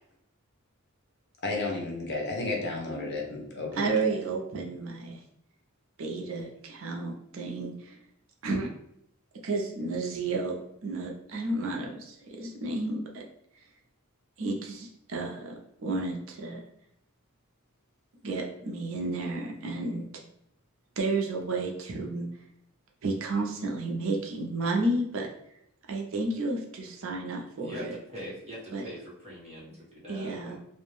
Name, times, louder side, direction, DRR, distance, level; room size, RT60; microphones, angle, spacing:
voice 1, 1.4-3.9, left 2 dB, 50° left, 0 dB, 0.7 m, -32 dB
voice 2, 3.7-5.2 6.0-8.0 8.4-8.7 9.4-13.2 14.4-15.5 15.8-16.6 18.2-20.1 21.0-22.3 23.0-25.3 25.9-27.9 28.7-28.9 30.1-30.6, right 2 dB, 65° right, 1 dB, 0.5 m, -32 dB
voice 3, 27.6-30.6, equal, 30° right, -6 dB, 0.9 m, -42 dB
2.5 x 2.1 x 3.1 m, 0.75 s
head